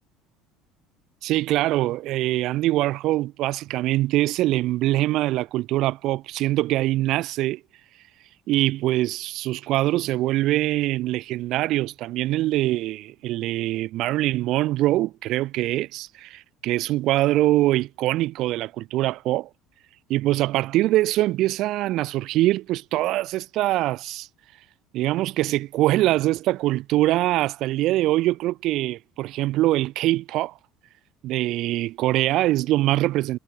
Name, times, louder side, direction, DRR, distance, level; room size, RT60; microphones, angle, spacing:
voice 1, 1.2-7.6 8.5-19.5 20.1-24.3 24.9-30.5 31.2-33.4, right 16 dB, 60° right, 1.0 m, -23 dB
hypercardioid pair, 70°, 0 cm